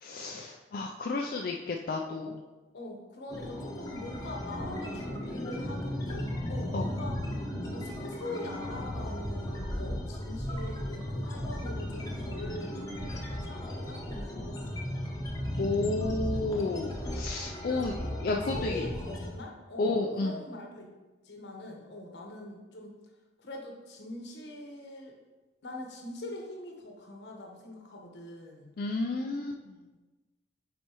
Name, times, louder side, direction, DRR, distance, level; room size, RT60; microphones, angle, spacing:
voice 1, 0.0-2.4 6.7-6.9 15.6-17.9 18.2-18.8 19.8-20.4 28.8-29.8, left 3 dB, 55° left, 0 dB, 0.4 m, -31 dB
voice 2, 2.7-7.2 7.7-14.9 17.7-18.2 18.5-20.9 21.2-23.0 23.4-25.2 25.6-28.7, left 1 dB, 80° left, 1 dB, 1.1 m, -43 dB
sound 1, 3.3-19.3, left 1 dB, 20° left, 0.9 m, -36 dB
8.0 x 4.3 x 3.0 m, 1.2 s
head